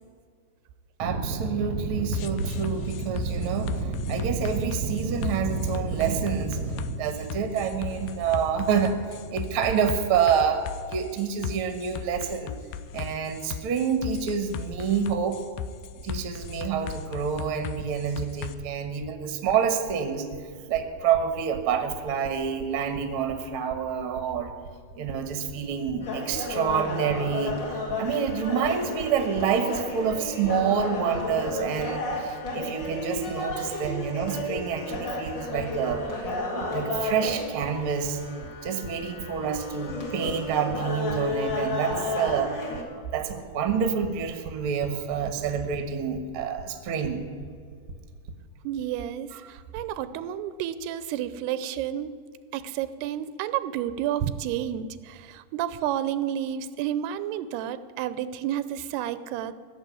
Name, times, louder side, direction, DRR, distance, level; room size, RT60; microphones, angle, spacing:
voice 1, 1.0-12.5 12.9-15.4 16.0-20.3 20.7-24.5 25.0-36.1 36.5-38.2 38.6-42.6 42.9-47.2 49.3-49.4, right 7 dB, 60° right, 7 dB, 1.4 m, -27 dB
sound 1, 2.1-18.5, left 8 dB, 80° left, 2.0 m, -37 dB
sound 2, 26.0-42.8, left 2 dB, 35° left, 2.0 m, -32 dB
voice 2, 48.6-52.1 52.5-59.5, right 11 dB, 85° right, 14 dB, 2.7 m, -30 dB
16.5 x 7.4 x 9.8 m, 2.1 s
omnidirectional pair, 4.6 m